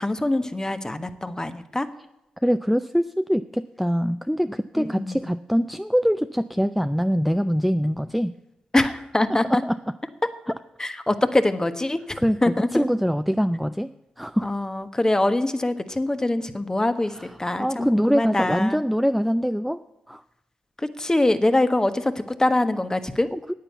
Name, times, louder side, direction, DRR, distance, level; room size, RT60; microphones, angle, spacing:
voice 1, 0.0-1.9 4.8-5.3 8.7-9.6 10.8-12.9 14.4-18.8 20.8-23.3, left 1 dB, 20° left, 10 dB, 1.3 m, -24 dB
voice 2, 2.4-8.3 9.3-9.8 12.2-13.9 14.2-14.5 17.2-17.3 17.6-19.8 20.1-20.2 23.3-23.5, equal, ahead, 10 dB, 0.5 m, -23 dB
10.0 x 8.9 x 8.1 m, 0.91 s
supercardioid pair, 45°, 3 cm